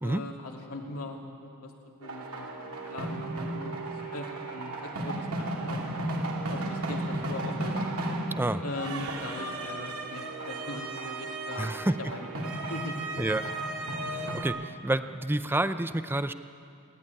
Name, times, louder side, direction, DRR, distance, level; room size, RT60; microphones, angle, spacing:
voice 1, 0.0-1.7 2.0-3.8 4.1-5.9 6.5-7.7 8.6-11.7 12.0-13.1 14.2-14.3, left 2 dB, 75° left, 0 dB, 2.7 m, -40 dB
sound 1, 2.0-14.4, right 2 dB, 75° right, 2.5 m, -34 dB
voice 2, 8.3-8.6 11.6-11.9 13.2-13.5 14.0-16.3, right 1 dB, 10° right, 11 dB, 0.5 m, -29 dB
27.5 x 11.5 x 9.7 m, 2.5 s
head